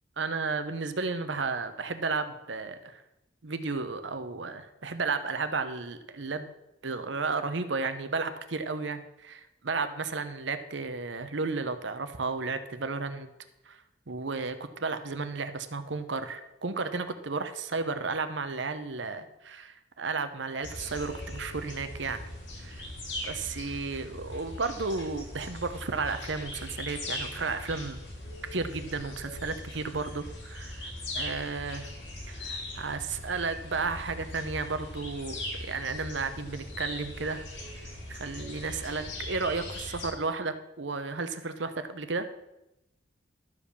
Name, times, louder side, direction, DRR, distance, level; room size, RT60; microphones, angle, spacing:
voice 1, 0.2-3.0 3.4-6.5 6.8-13.3 13.7-13.8 14.1-22.2 22.6-22.8 23.2-28.0 28.5-31.9 32.3-37.4 38.1-42.3, right 4 dB, 80° right, 10 dB, 0.9 m, -33 dB
sound 1, 20.6-40.1, left 1 dB, 85° left, 3.2 m, -40 dB
12.0 x 5.0 x 6.9 m, 0.92 s
head